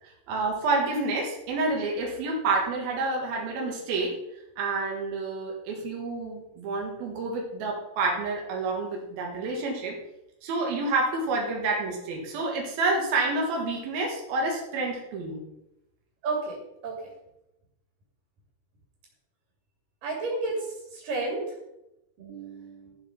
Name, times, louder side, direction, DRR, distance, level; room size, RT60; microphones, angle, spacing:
voice 1, 0.0-4.2 4.6-10.0 10.4-15.4, right 3 dB, 85° right, -1 dB, 3.6 m, -28 dB
voice 2, 16.2-16.6 16.8-16.9 20.0-20.6 20.9-21.4 22.2-22.9, right 3 dB, 65° right, -1 dB, 4.5 m, -31 dB
14.0 x 7.9 x 5.6 m, 0.90 s
omnidirectional pair, 4.1 m